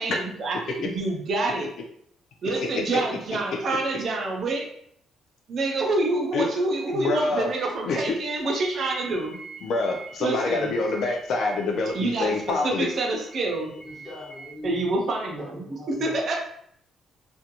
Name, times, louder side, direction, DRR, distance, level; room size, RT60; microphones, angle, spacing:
voice 1, 0.0-1.7 2.4-4.7 5.5-9.4 10.2-10.7 11.9-13.7 14.6-16.4, right 2 dB, 50° right, 1 dB, 0.5 m, -27 dB
voice 2, 6.9-7.5 7.9-8.2 9.6-12.9, left 3 dB, 65° left, 2 dB, 0.4 m, -26 dB
sound 1, 8.6-14.5, right 3 dB, 5° right, 1.0 m, -45 dB
voice 3, 13.8-14.9 15.4-16.2, left 1 dB, 15° left, -6 dB, 1.2 m, -41 dB
2.5 x 2.2 x 2.8 m, 0.68 s
cardioid pair, 130°, 0 cm